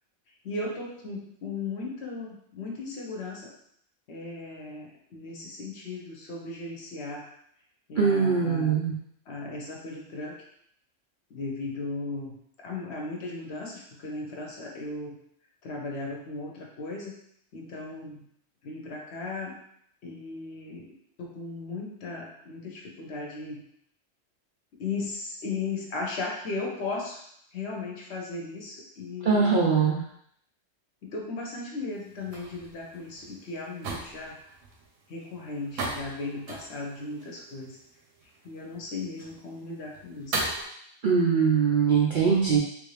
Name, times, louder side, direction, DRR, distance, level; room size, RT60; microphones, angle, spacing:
voice 1, 0.4-3.5 4.1-7.3 7.9-8.8 9.3-10.4 11.3-15.1 15.6-17.2 17.5-18.3 18.6-19.6 20.0-20.9 21.2-23.6 24.8-27.2 27.5-29.9 31.0-34.4 35.1-37.8 38.4-40.4, left 3 dB, 60° left, -1 dB, 0.9 m, -36 dB
voice 2, 8.0-8.9 29.2-30.0 41.0-42.6, right 6 dB, 65° right, -3 dB, 0.5 m, -22 dB
sound 1, 31.9-40.7, right 2 dB, 80° right, 1.1 m, -38 dB
3.4 x 2.5 x 3.2 m, 0.68 s
omnidirectional pair, 1.3 m